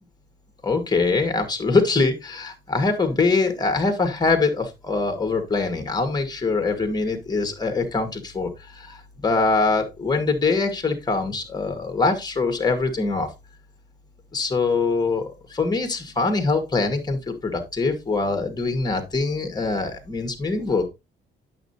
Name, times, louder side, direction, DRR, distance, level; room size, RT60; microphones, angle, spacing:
voice 1, 0.6-13.3 14.3-20.8, left 3 dB, 20° left, 7 dB, 2.1 m, -23 dB
8.8 x 6.8 x 2.8 m, 0.24 s
cardioid pair, 90°, 20 cm